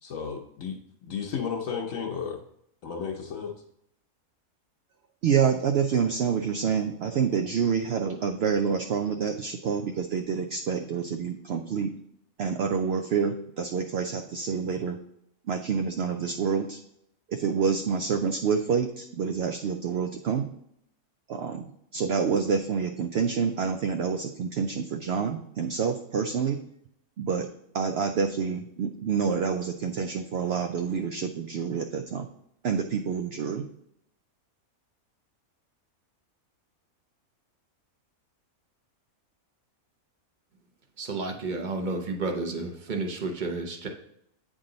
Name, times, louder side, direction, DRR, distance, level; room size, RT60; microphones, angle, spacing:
voice 1, 0.0-2.4 2.8-3.5, left 6 dB, 70° left, 1 dB, 1.1 m, -33 dB
voice 2, 5.2-11.9 12.4-15.0 15.5-16.8 17.3-20.5 21.3-21.6 21.9-26.6 27.2-27.5 27.7-32.3 32.6-33.7, right 6 dB, 65° right, 6 dB, 0.6 m, -27 dB
voice 3, 41.0-43.9, right 3 dB, 40° right, 3 dB, 0.9 m, -31 dB
8.7 x 3.8 x 3.9 m, 0.73 s
omnidirectional pair, 1.5 m